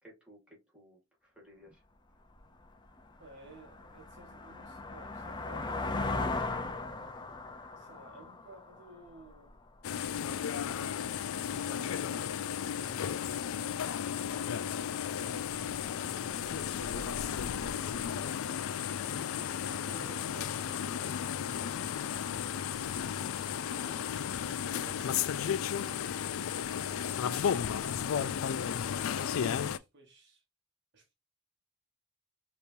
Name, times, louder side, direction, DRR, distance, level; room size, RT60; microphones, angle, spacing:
voice 1, 0.0-0.4 0.7-1.8 13.2-13.6 23.8-24.0, right 1 dB, 5° right, 2.1 m, -56 dB
sound 1, 2.4-2.5 3.0-9.5, left 3 dB, 20° left, 0.6 m, -38 dB
voice 2, 3.2-6.1 7.8-9.6 11.5-13.0 14.2-14.6 16.5-18.0 19.7-21.3 23.7-26.1 27.3-28.4 28.9-30.4 30.9-31.1, right 2 dB, 60° right, 1.2 m, -54 dB
sound 2, 9.8-29.8, left 8 dB, 80° left, 0.4 m, -34 dB
5.2 x 3.0 x 2.6 m
head